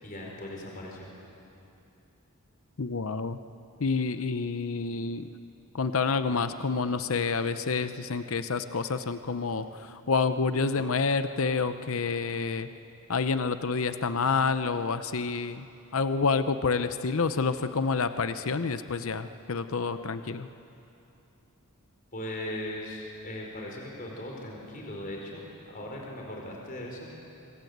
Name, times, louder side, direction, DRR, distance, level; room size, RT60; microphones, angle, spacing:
voice 1, 0.0-1.1 22.1-25.4 25.7-27.1, left 1 dB, 40° left, -1 dB, 4.6 m, -38 dB
voice 2, 2.8-3.4 3.8-5.3 5.7-12.7 13.1-15.7 15.9-20.5, left 4 dB, 70° left, 10 dB, 0.7 m, -28 dB
26.5 x 24.5 x 8.1 m, 2.8 s
head